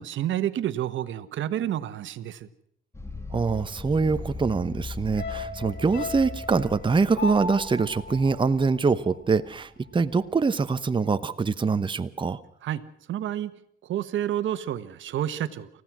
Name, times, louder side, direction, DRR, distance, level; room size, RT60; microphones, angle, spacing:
voice 1, 0.0-2.5 12.6-12.8 13.1-13.5 13.8-15.7, right 11 dB, 75° right, 13 dB, 1.3 m, -29 dB
sound 1, 2.9-10.3, left 3 dB, 15° left, 2.2 m, -40 dB
voice 2, 3.3-12.4, right 4 dB, 25° right, 11 dB, 1.0 m, -24 dB
sound 2, 5.2-9.6 9.9-10.0, left 2 dB, 60° left, 5.3 m, -36 dB
29.0 x 15.5 x 6.2 m, 0.69 s
cardioid pair, 90°, 20 cm